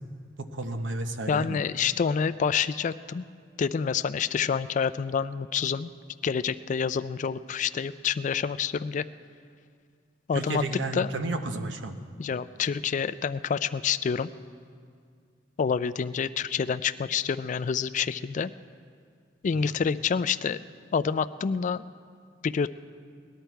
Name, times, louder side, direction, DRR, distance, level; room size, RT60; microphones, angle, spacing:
voice 1, 0.4-1.6 10.3-11.9 19.6-19.8, right 2 dB, 85° right, 7 dB, 0.9 m, -32 dB
voice 2, 1.3-3.3 3.6-5.9 6.2-9.0 10.3-10.6 10.9-11.1 12.2-14.3 15.6-18.5 19.4-20.6 20.9-21.8 22.4-22.7, left 6 dB, 45° left, 14 dB, 0.3 m, -27 dB
18.5 x 11.5 x 4.6 m, 2.2 s
head